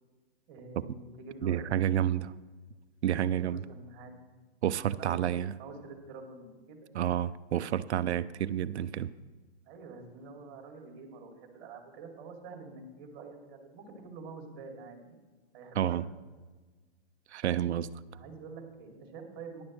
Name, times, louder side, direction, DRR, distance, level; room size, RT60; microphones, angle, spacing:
voice 1, 0.5-1.8 3.3-4.1 4.9-5.2 5.6-6.8 9.7-15.2 15.5-16.0 18.1-19.6, right 4 dB, 35° right, 2.8 m, -47 dB
voice 2, 1.4-2.3 3.0-3.6 4.6-5.6 6.9-9.1 15.8-16.0 17.3-17.9, right 10 dB, 85° right, 0.6 m, -29 dB
15.0 x 10.5 x 3.3 m
hypercardioid pair, 140°, 33 cm